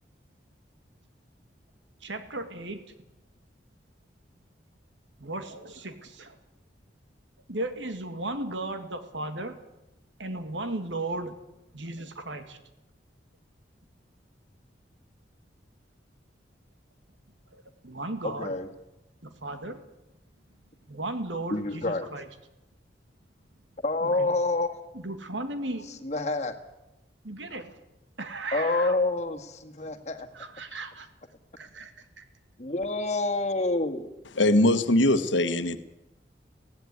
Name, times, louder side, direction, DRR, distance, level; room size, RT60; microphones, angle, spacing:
voice 1, 2.0-2.8 5.2-6.4 7.5-9.6 10.2-11.4 11.7-12.6 17.5-18.5 19.2-19.8 20.9-22.3 24.0-24.3 24.9-25.9 27.2-27.7 28.2-29.0 30.3-31.1 31.6-32.2, right 2 dB, 85° right, 8 dB, 2.3 m, -35 dB
voice 2, 18.2-18.7 21.5-22.1 23.8-24.7 26.0-26.5 28.5-30.3 30.7-30.8 32.6-34.1, left 2 dB, 40° left, 5 dB, 1.8 m, -28 dB
voice 3, 34.4-35.8, left 1 dB, 85° left, 11 dB, 1.3 m, -21 dB
16.5 x 16.0 x 9.7 m, 0.94 s
head